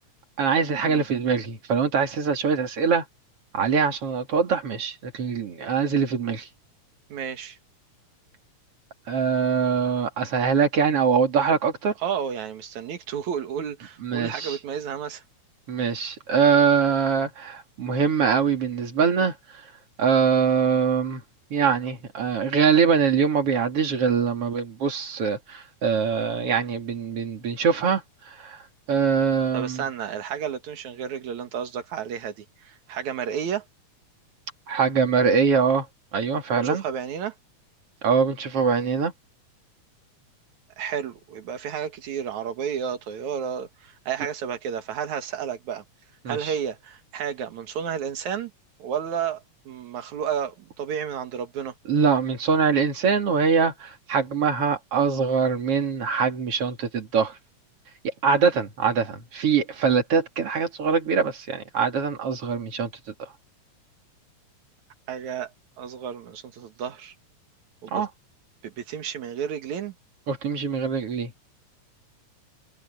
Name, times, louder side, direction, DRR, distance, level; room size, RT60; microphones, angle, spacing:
voice 1, 0.4-3.0 3.5-6.5 9.1-11.9 14.0-14.6 15.7-19.3 20.0-21.2 21.5-28.0 28.3-28.6 28.9-29.8 34.7-35.9 36.1-36.8 38.0-39.1 46.2-46.5 51.9-57.3 58.2-62.9 67.9-68.1 70.3-71.3, right 6 dB, 50° right, 3.4 m, -23 dB
voice 2, 7.1-7.6 12.0-15.2 29.5-33.6 36.5-37.3 40.8-45.8 46.3-48.5 48.8-51.7 65.1-65.5 65.8-67.1 67.8-68.1 68.6-69.9, right 8 dB, 75° right, 3.0 m, -31 dB
omnidirectional pair, 3.4 m